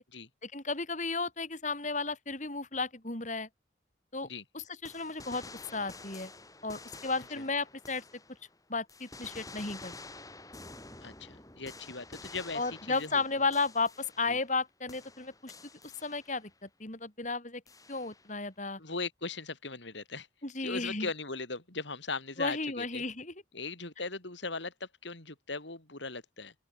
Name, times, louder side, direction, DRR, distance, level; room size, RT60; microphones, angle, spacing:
voice 1, 0.4-3.5 4.1-4.3 4.5-5.4 5.7-6.3 6.6-8.0 8.7-9.9 12.5-15.5 16.0-17.6 17.9-18.8 20.4-21.1 22.4-23.3, left 3 dB, 40° left, 3.7 m, -33 dB
sound 1, 4.8-8.6 8.9-14.6 14.9-16.5 17.7-18.4, left 3 dB, 20° left, 7.0 m, -50 dB
voice 2, 11.0-13.2 14.3-14.4 18.8-20.3 20.6-23.0 23.5-26.5, left 3 dB, 70° left, 3.8 m, -39 dB
open air
head